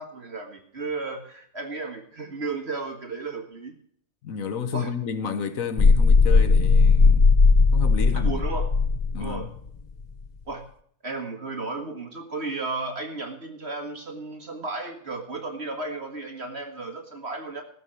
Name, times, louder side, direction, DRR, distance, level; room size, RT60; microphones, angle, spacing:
voice 1, 0.0-3.7 4.7-4.9 8.1-8.7 9.2-9.5 10.5-10.7 11.0-17.6, right 3 dB, 50° right, 1.9 m, -34 dB
voice 2, 4.2-7.3 7.7-8.4 9.1-9.5, left 6 dB, 75° left, 1.4 m, -31 dB
sound 1, 5.8-9.5, left 4 dB, 50° left, 0.5 m, -17 dB
15.0 x 7.2 x 7.7 m
omnidirectional pair, 1.4 m